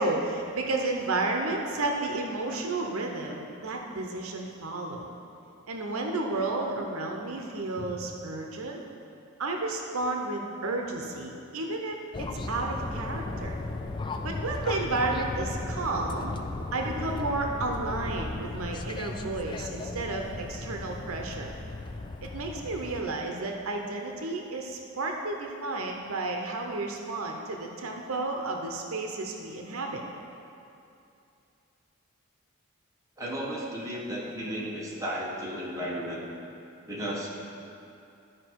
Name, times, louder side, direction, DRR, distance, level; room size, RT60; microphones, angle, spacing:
voice 1, 0.0-5.1 5.7-8.8 9.4-13.6 14.2-16.3 16.7-21.5 22.2-30.0, right 2 dB, 80° right, 2 dB, 0.8 m, -32 dB
sound 1, 12.1-23.0, left 2 dB, 20° left, 0.3 m, -36 dB
voice 2, 33.2-36.2 36.9-37.3, equal, 15° right, -6 dB, 1.3 m, -34 dB
12.5 x 4.8 x 4.6 m, 2.7 s
head